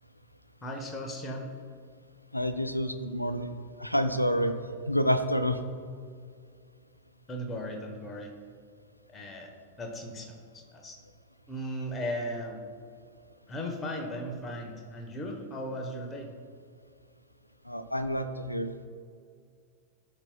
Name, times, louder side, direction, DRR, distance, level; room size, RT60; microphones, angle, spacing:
voice 1, 0.6-1.6 7.3-8.3 9.1-9.5 9.8-11.0 11.5-12.6 13.5-16.3, equal, 20° left, 3 dB, 1.1 m, -37 dB
voice 2, 2.3-3.5 3.8-4.5 4.9-5.6 17.7-18.9, equal, 90° left, 10 dB, 0.4 m, -28 dB
13.5 x 5.6 x 2.3 m, 2.2 s
figure-of-eight pair, 90°, 0 cm